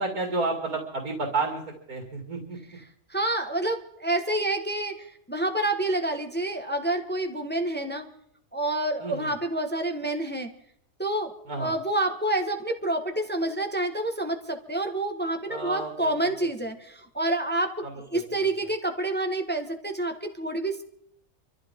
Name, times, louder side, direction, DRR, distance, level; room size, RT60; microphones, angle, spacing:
voice 1, 0.0-1.6 1.9-2.6 9.0-9.3 11.5-11.7 15.5-16.1, right 3 dB, 85° right, 2 dB, 2.9 m, -30 dB
voice 2, 3.1-8.1 8.5-10.5 11.0-11.3 11.6-17.9 18.1-20.8, right 1 dB, 5° left, 4 dB, 1.3 m, -28 dB
25.5 x 14.0 x 3.7 m, 0.69 s
omnidirectional pair, 1.5 m